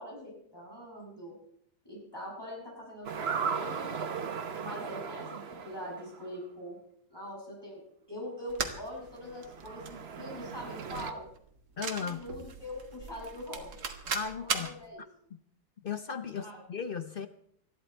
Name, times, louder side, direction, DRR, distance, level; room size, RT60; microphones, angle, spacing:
voice 1, 0.0-1.3 1.8-4.1 4.6-6.8 7.1-7.8 8.1-11.3 11.9-13.8 14.4-15.0 16.3-16.5, equal, 15° left, -3 dB, 6.9 m, -43 dB
sound 1, 3.0-6.4 9.1-11.1, right 6 dB, 45° right, 1.1 m, -37 dB
sound 2, 8.5-14.8, right 5 dB, 70° right, 2.0 m, -39 dB
voice 2, 11.8-12.3 14.1-14.8 15.3-15.4 15.8-17.3, left 6 dB, 50° left, 9 dB, 0.6 m, -36 dB
20.0 x 13.5 x 4.5 m, 0.67 s
omnidirectional pair, 1.8 m